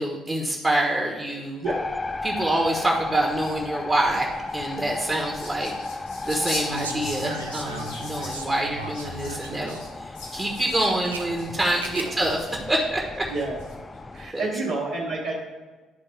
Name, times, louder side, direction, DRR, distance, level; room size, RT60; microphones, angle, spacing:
voice 1, 0.0-1.6 2.2-5.7 6.2-13.3 14.3-14.5, right 1 dB, 15° right, -1 dB, 1.2 m, -26 dB
sound 1, 1.6-14.3, left 3 dB, 25° left, 0.3 m, -35 dB
sound 2, 4.3-12.7 13.3-14.0, left 3 dB, 75° left, 1.4 m, -41 dB
sound 3, 6.7-9.8 10.5-11.2 11.7-12.3 12.5-12.6, right 3 dB, 85° right, 0.4 m, -37 dB
voice 2, 13.2-13.6 14.1-15.3, right 2 dB, 65° right, -7 dB, 1.1 m, -29 dB
10.5 x 4.0 x 3.4 m, 1.3 s
figure-of-eight pair, 50°, 0 cm